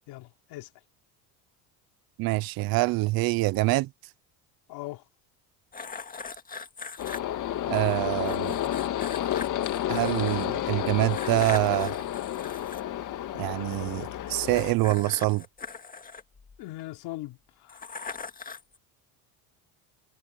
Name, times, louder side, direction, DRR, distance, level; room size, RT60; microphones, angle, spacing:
voice 1, 0.1-0.7 4.7-5.0 16.6-17.8, left 18 dB, 65° left, 3.3 m, -40 dB
voice 2, 2.2-3.9 7.7-8.6 9.9-11.9 13.4-15.4, right 21 dB, 55° right, 0.7 m, -25 dB
sound 1, 5.7-7.2 8.3-10.5 11.1-12.8 14.4-16.8 17.7-18.8, left 5 dB, 20° left, 2.0 m, -41 dB
sound 2, 7.0-14.7, left 12 dB, 45° left, 2.0 m, -31 dB
supercardioid pair, 120°, 42 cm